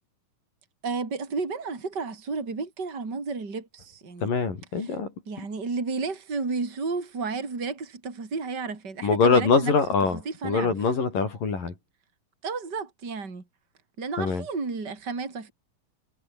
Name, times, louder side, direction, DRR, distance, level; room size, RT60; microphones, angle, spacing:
voice 1, 0.8-4.3 4.8-4.9 5.3-9.7 10.1-10.7 12.4-13.4 14.0-15.5, right 4 dB, 30° right, 4.6 m, -32 dB
voice 2, 4.2-5.1 9.0-11.7 14.2-14.4, left 4 dB, 70° left, 6.9 m, -23 dB
omnidirectional pair, 4.0 m